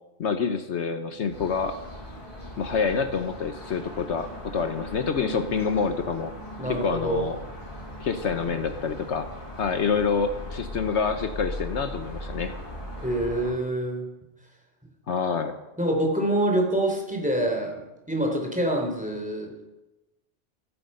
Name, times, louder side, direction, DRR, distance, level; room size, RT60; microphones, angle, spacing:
voice 1, 0.2-1.8 2.6-6.3 6.7-7.4 8.0-9.3 9.6-12.5 15.1-15.5, left 5 dB, 70° left, 8 dB, 1.2 m, -27 dB
sound 1, 1.3-13.5, left 1 dB, 25° left, 6.6 m, -39 dB
voice 2, 6.6-7.3 13.0-14.1 15.8-17.8 18.1-19.7, right 1 dB, 5° right, 2 dB, 3.3 m, -26 dB
15.5 x 15.0 x 5.5 m, 1.0 s
omnidirectional pair, 1.3 m